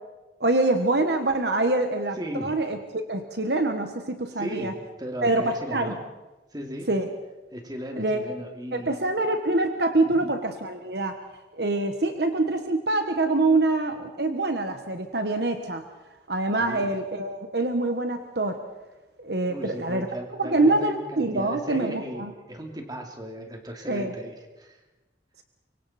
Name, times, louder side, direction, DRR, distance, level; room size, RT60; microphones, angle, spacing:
voice 1, 0.4-4.7 5.2-5.9 6.9-7.1 8.0-8.2 8.7-11.1 11.5-15.8 16.3-18.6 19.2-20.1 20.4-22.3 23.9-24.1, right 2 dB, 60° right, 6 dB, 1.4 m, -25 dB
voice 2, 2.2-2.6 4.3-6.0 6.5-6.9 7.5-9.0 10.0-10.3 16.6-16.9 19.5-24.8, equal, 20° right, 3 dB, 2.7 m, -36 dB
25.0 x 24.0 x 4.4 m, 1.1 s
head